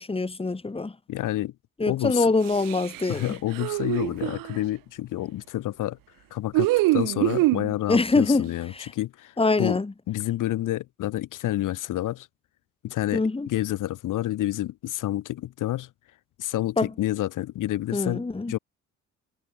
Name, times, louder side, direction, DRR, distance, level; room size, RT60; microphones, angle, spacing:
voice 1, 0.0-1.0 1.8-3.4 7.9-8.5 8.7-8.9 9.4-9.9 13.1-13.5 16.8-16.9 17.9-18.5, left 3 dB, 15° left, 2.3 m, -24 dB
voice 2, 1.1-1.5 1.9-2.3 3.1-6.0 6.3-9.3 9.6-9.8 10.1-12.3 12.8-15.9 16.4-18.2 18.5-18.6, left 14 dB, 50° left, 2.0 m, -29 dB
sound 1, 2.4-4.6 6.5-7.7, right 20 dB, 55° right, 1.3 m, -25 dB
figure-of-eight pair, 50°, 40 cm